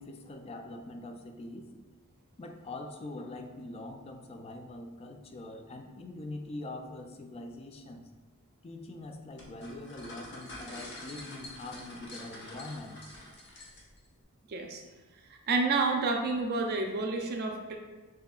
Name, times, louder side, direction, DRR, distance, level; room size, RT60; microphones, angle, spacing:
voice 1, 0.0-1.7 2.4-8.1 8.6-13.0, left 2 dB, 30° left, 5 dB, 0.3 m, -43 dB
sound 1, 9.4-14.1, left 1 dB, 55° left, 0.9 m, -46 dB
voice 2, 14.5-14.8 15.3-17.8, right 3 dB, 45° right, 3 dB, 0.4 m, -29 dB
6.3 x 2.7 x 2.3 m, 1.3 s
head